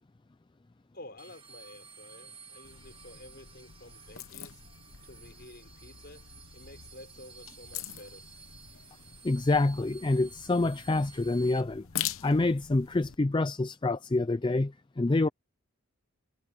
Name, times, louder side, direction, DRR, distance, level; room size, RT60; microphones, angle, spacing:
voice 1, 0.9-4.6 5.0-8.3, left 1 dB, 45° left, 5.3 m, -51 dB
sound 1, 1.2-11.6, right 5 dB, 25° right, 2.1 m, -53 dB
sound 2, 2.6-13.2, left 11 dB, 65° left, 1.0 m, -43 dB
voice 2, 9.2-11.9 12.2-15.3, left 2 dB, 20° left, 0.4 m, -27 dB
head